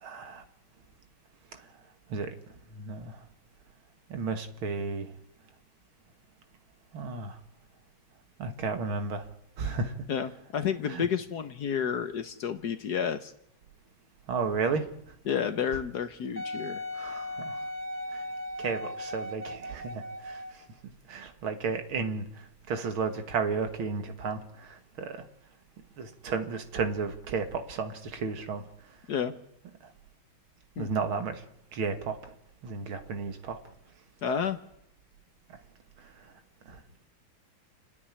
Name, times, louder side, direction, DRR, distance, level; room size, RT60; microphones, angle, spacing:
voice 1, 0.0-0.4 1.5-1.7 2.1-3.3 4.1-5.1 6.9-7.4 8.4-9.3 9.6-10.0 10.9-11.1 14.3-15.2 16.9-17.7 18.1-18.3 18.6-20.6 21.1-25.3 26.0-28.7 29.8-29.9 30.8-31.4 31.7-32.3 32.6-33.6 36.0-36.3 36.7-36.8, right 4 dB, 75° right, 7 dB, 2.5 m, -33 dB
voice 2, 10.1-13.3 15.3-16.8 29.1-29.3 30.8-30.9 34.2-34.6, left 7 dB, 60° left, 10 dB, 1.3 m, -30 dB
Wind instrument woodwind instrument, 16.4-20.7 21.3-21.4, left 1 dB, 10° right, 1.1 m, -37 dB
29.0 x 9.6 x 10.0 m, 0.79 s
omnidirectional pair, 2.3 m